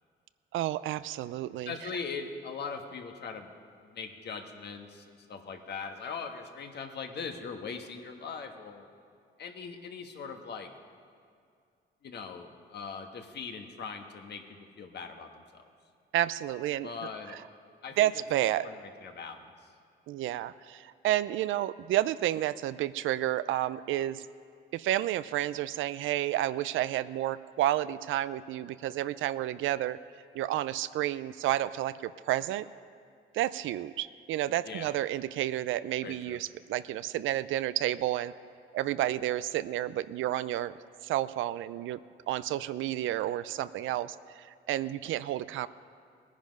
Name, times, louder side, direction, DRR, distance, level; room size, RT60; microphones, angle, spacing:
voice 1, 0.5-1.9 16.1-16.9 17.3-17.4 18.0-18.7 20.1-24.2 24.7-30.0 30.3-32.7 33.3-38.3 38.7-40.7 41.0-42.0 42.3-45.7, right 13 dB, 80° right, 15 dB, 0.5 m, -31 dB
voice 2, 1.6-3.5 3.8-8.9 9.4-10.7 12.0-15.6 16.8-17.4 17.8-18.2 18.6-19.4 34.7-34.9 36.0-36.4, left 5 dB, 60° left, 5 dB, 1.4 m, -40 dB
18.5 x 10.5 x 5.3 m, 2.3 s
cardioid pair, 90°, 20 cm